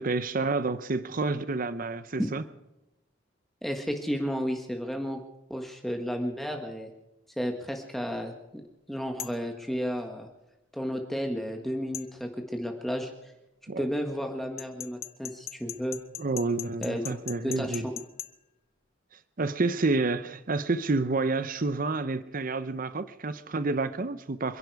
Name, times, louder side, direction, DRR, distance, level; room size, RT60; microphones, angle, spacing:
voice 1, 0.0-2.4 13.7-13.9 16.2-17.9 19.4-24.6, right 3 dB, 45° right, 13 dB, 0.7 m, -29 dB
voice 2, 3.6-5.2 5.5-6.9 7.4-8.6 8.9-10.3 10.7-13.3 13.8-16.0 16.8-17.8, equal, ahead, 3 dB, 1.5 m, -32 dB
sound 1, 9.2-9.4 11.9-12.1 14.6-18.3, left 11 dB, 30° left, 0.9 m, -38 dB
27.0 x 11.0 x 4.8 m, 0.96 s
head